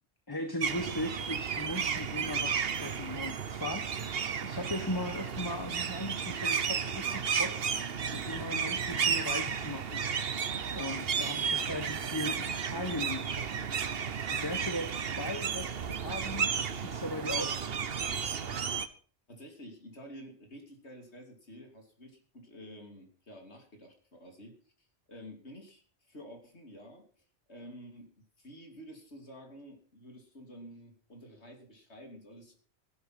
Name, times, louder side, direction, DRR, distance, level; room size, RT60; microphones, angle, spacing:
voice 1, 0.3-7.6 8.1-10.5 10.7-14.0 14.3-14.9 15.2-17.6, left 1 dB, 20° left, 6 dB, 1.4 m, -38 dB
sound 1, 0.6-18.9, right 6 dB, 65° right, 1.2 m, -33 dB
voice 2, 19.3-25.8 26.1-32.6, equal, 90° left, 3 dB, 3.3 m, -50 dB
15.0 x 11.5 x 5.9 m, 0.43 s
omnidirectional pair, 1.1 m